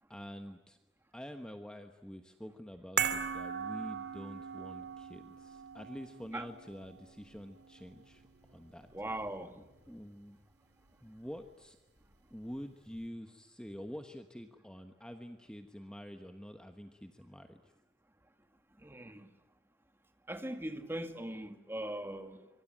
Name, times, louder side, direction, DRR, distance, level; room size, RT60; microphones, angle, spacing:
voice 1, 0.1-0.8 1.1-10.4 11.0-11.8 12.3-17.7, equal, 5° left, 1.2 m, -47 dB
sound 1, 3.0-9.4 9.7-9.8, right 7 dB, 60° right, 2.6 m, -39 dB
voice 2, 8.9-9.6 18.8-19.3 20.3-22.5, right 1 dB, 15° right, 1.9 m, -40 dB
25.5 x 24.0 x 9.1 m
head